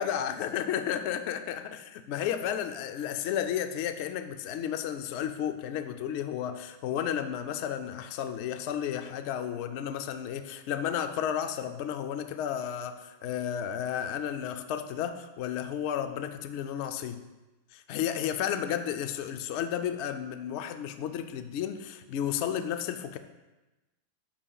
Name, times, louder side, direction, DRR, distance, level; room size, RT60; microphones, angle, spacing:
voice 1, 0.0-17.2 17.7-23.2, left 9 dB, 85° left, 8 dB, 0.6 m, -32 dB
10.5 x 6.9 x 2.3 m, 1.1 s
omnidirectional pair, 1.7 m